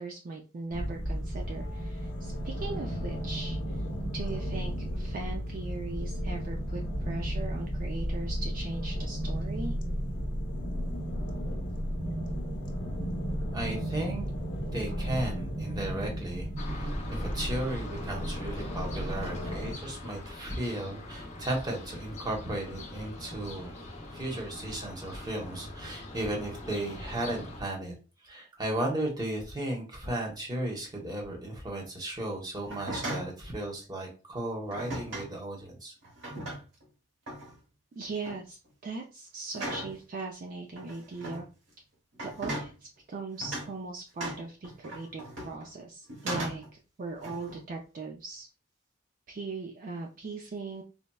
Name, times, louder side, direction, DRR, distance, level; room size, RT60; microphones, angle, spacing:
voice 1, 0.0-3.9 4.1-9.7 38.0-41.5 42.2-42.7 43.1-46.6 47.0-48.5 49.3-50.8, right 3 dB, 45° right, 0 dB, 0.4 m, -39 dB
sound 1, 0.7-19.7, equal, 70° left, 0.7 m, -34 dB
voice 2, 13.5-14.3 14.7-23.7 24.1-27.9 28.2-35.9, right 1 dB, 20° right, 0 dB, 0.9 m, -35 dB
sound 2, 16.6-27.6, left 1 dB, 40° left, 0.6 m, -42 dB
sound 3, 32.6-33.4 34.7-35.3 36.0-36.8 37.3-37.6 38.0-38.4 39.5-40.0 40.8-41.4 42.1-42.7 43.4-43.7 44.2-45.7 46.1-46.7 47.2-47.6, right 1 dB, 80° right, 1.1 m, -38 dB
4.1 x 2.1 x 2.2 m, 0.33 s
head